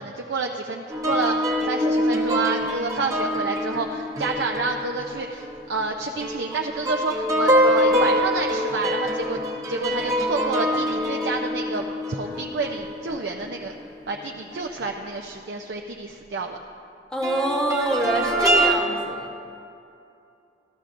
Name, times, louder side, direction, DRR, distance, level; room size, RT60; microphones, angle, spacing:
voice 1, 0.0-9.4 9.7-13.8 14.1-16.6, right 3 dB, 65° right, 2 dB, 0.5 m, -29 dB
sound 1, 0.9-5.9 6.2-13.9 14.5-14.7 17.2-18.7, equal, 20° right, 0.8 m, -24 dB
voice 2, 17.1-19.4, equal, 5° left, 0 dB, 1.0 m, -26 dB
13.5 x 13.0 x 2.6 m, 2.7 s
head